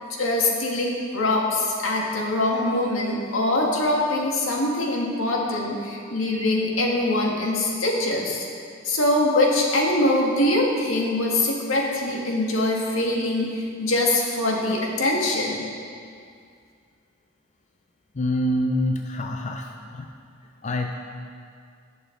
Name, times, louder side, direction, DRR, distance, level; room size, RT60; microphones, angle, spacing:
voice 1, 0.2-8.5 8.8-15.6, left 1 dB, 85° left, -2 dB, 1.9 m, -23 dB
voice 2, 18.1-20.1 20.4-20.9, left 1 dB, 35° left, 3 dB, 0.5 m, -26 dB
18.0 x 7.0 x 3.9 m, 2.3 s
head